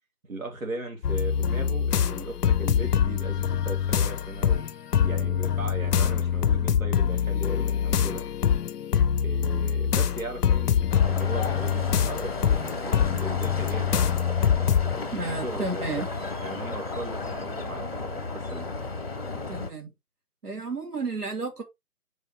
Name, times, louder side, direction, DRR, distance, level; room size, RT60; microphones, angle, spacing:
voice 1, 0.3-4.6 5.0-8.2 9.2-14.1 15.2-16.0 16.4-18.7, right 1 dB, 60° right, 2.5 m, -37 dB
sound 1, 1.0-15.1, left 8 dB, 80° left, 0.6 m, -24 dB
sound 2, 10.9-19.7, left 3 dB, 40° left, 1.2 m, -34 dB
voice 2, 15.1-16.1 19.5-19.9 20.4-21.6, right 3 dB, 75° right, 2.5 m, -32 dB
8.2 x 4.7 x 3.0 m
figure-of-eight pair, 175°, 47 cm